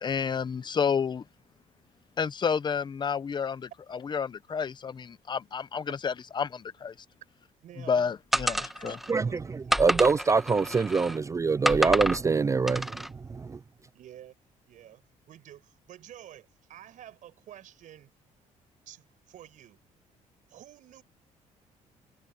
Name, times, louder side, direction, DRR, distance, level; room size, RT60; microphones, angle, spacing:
voice 1, 0.0-1.2 2.2-6.9 7.9-9.0, left 6 dB, 35° left, 0.8 m, -30 dB
voice 2, 7.6-7.9 8.3-10.0 13.0-13.3 13.9-14.4 14.6-15.0 15.3-18.1 18.9-19.8 20.5-21.0, right 11 dB, 70° right, 7.1 m, -50 dB
sound 1, 8.3-9.1 9.7-11.2 11.7-12.2 12.7-13.1, equal, ahead, 1.6 m, -29 dB
voice 3, 9.1-13.0 13.3-13.6, right 4 dB, 20° right, 0.4 m, -25 dB
cardioid pair, 100°, 14 cm